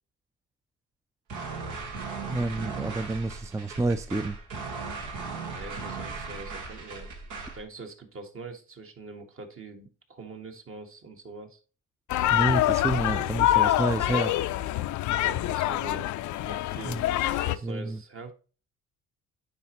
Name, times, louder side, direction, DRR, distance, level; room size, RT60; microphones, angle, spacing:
sound 1, 1.3-7.6, right 4 dB, 80° right, 1.8 m, -37 dB
voice 1, 2.3-4.4 12.3-14.3 16.9-17.3 17.6-18.0, right 2 dB, 10° right, 0.4 m, -29 dB
voice 2, 5.5-7.1 7.5-11.6 15.1-16.1 16.4-18.3, right 3 dB, 45° right, 1.5 m, -43 dB
sound 2, 12.1-17.6, left 14 dB, 75° left, 0.5 m, -25 dB
9.6 x 4.2 x 2.9 m
cardioid pair, 90°, 30 cm